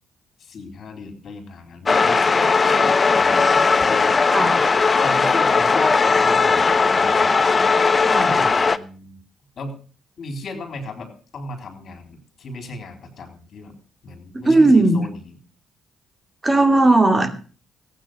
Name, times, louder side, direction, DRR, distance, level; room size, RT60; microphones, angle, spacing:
voice 1, 0.4-3.5 3.7-4.2 5.0-7.3 8.3-9.2 9.6-9.8 10.2-13.8 14.0-15.4, left 3 dB, 55° left, 6 dB, 3.8 m, -36 dB
sound 1, 1.9-8.8, left 4 dB, 35° left, 0.8 m, -17 dB
voice 2, 8.0-8.4 14.4-15.0 16.4-17.3, right 2 dB, 25° right, 8 dB, 2.7 m, -16 dB
15.5 x 9.0 x 6.6 m, 0.39 s
hypercardioid pair, 50°, 0 cm